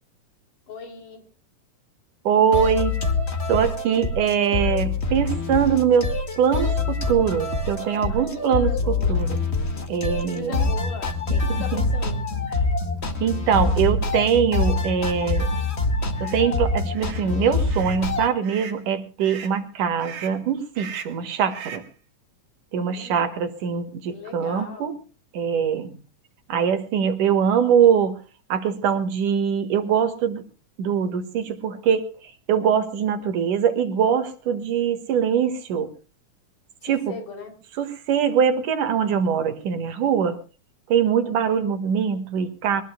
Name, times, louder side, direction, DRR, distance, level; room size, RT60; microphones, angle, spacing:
voice 1, 0.7-1.3 8.1-9.3 10.2-12.2 22.7-23.4 24.1-25.0 36.8-37.6, left 4 dB, 70° left, 5 dB, 4.8 m, -39 dB
voice 2, 2.2-2.9 3.5-6.1 6.4-9.4 9.9-10.7 11.7-11.8 13.2-15.5 16.2-21.8 22.7-24.9 25.3-25.9 26.5-28.2 28.5-30.4 30.8-32.0 32.5-35.9 36.9-37.0 37.8-40.4 40.9-42.8, right 7 dB, 75° right, 9 dB, 3.1 m, -22 dB
sound 1, 2.5-18.3, left 3 dB, 25° left, 1.5 m, -25 dB
sound 2, 16.1-16.4 16.9-17.3 17.7-18.0 18.4-18.8 19.2-19.6 20.0-20.4 20.7-21.2 21.5-21.9, right 8 dB, 50° right, 2.2 m, -39 dB
23.5 x 19.5 x 2.2 m, 0.34 s
omnidirectional pair, 3.8 m